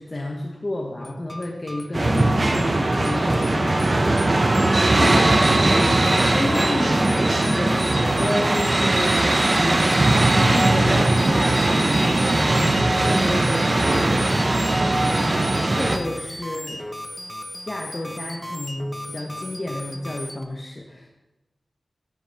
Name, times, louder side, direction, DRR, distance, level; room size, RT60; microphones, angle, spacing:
voice 1, 0.0-4.3 6.2-6.8 7.5-14.5 15.2-16.9 17.7-21.1, left 1 dB, 40° left, -1 dB, 0.9 m, -32 dB
sound 1, 1.0-20.4, left 1 dB, 10° left, 0.7 m, -36 dB
sound 2, 1.9-16.0, right 2 dB, 45° right, 0.8 m, -19 dB
voice 2, 2.0-2.4 3.1-3.3 4.9-5.6 6.3-7.7, left 1 dB, 65° left, -3 dB, 2.4 m, -28 dB
13.0 x 4.7 x 3.4 m, 1.0 s
cardioid pair, 55°, 0 cm